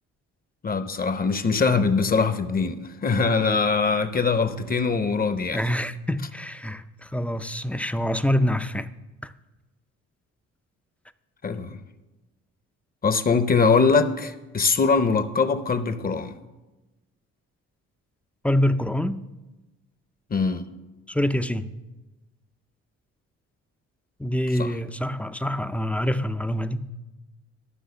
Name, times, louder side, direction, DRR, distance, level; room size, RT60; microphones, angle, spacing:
voice 1, 0.6-5.6 11.4-11.8 13.0-16.3 20.3-20.7 24.6-24.7, left 4 dB, 30° left, 0.7 m, -22 dB
voice 2, 5.5-8.9 9.2-9.3 18.4-19.2 21.1-21.7 24.2-26.9, left 1 dB, 5° left, 0.4 m, -25 dB
12.5 x 6.2 x 6.9 m
cardioid pair, 90°, 30 cm